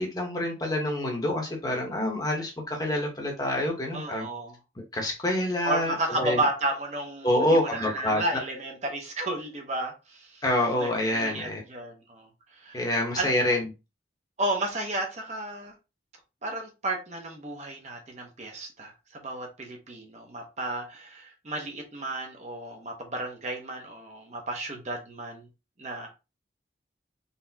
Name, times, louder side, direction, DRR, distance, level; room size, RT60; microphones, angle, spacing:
voice 1, 0.0-4.2 4.8-6.4 7.2-8.2 10.4-11.6 12.7-13.6, left 1 dB, 20° left, 1.0 m, -27 dB
voice 2, 3.9-4.6 5.6-10.4 10.8-12.8 13.2-13.6 14.4-15.7 16.4-25.5 25.8-26.1, right 1 dB, 40° right, 0.9 m, -33 dB
4.1 x 3.4 x 2.8 m
head